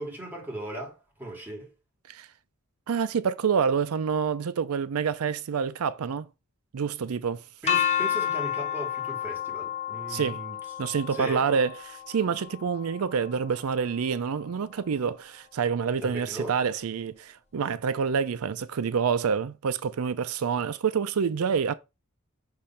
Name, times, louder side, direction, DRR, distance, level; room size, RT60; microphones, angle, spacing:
voice 1, 0.0-1.7 7.6-10.6 11.1-11.5 16.0-16.6, right 1 dB, 10° right, 2.2 m, -37 dB
voice 2, 2.9-6.3 6.7-7.4 10.1-10.4 10.8-21.7, right 6 dB, 90° right, 0.5 m, -27 dB
sound 1, 7.7-13.6, left 9 dB, 30° left, 0.9 m, -31 dB
6.8 x 3.1 x 5.7 m
head